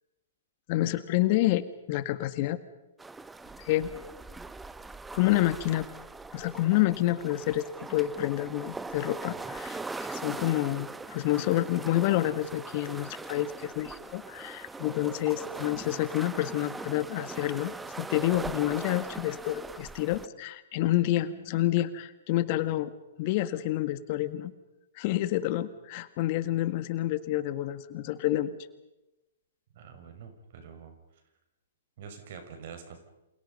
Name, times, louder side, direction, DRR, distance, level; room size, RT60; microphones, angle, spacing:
voice 1, 0.7-2.6 3.6-3.9 5.1-5.9 6.3-7.6 7.9-22.9 23.2-24.5 25.0-28.5, left 15 dB, 45° left, 13 dB, 1.7 m, -28 dB
sound 1, 3.0-20.3, right 3 dB, 10° right, 0.9 m, -41 dB
voice 2, 29.7-31.0 32.0-33.0, right 6 dB, 55° right, 6 dB, 6.2 m, -46 dB
28.5 x 28.0 x 5.5 m, 0.96 s
hypercardioid pair, 120°, 0 cm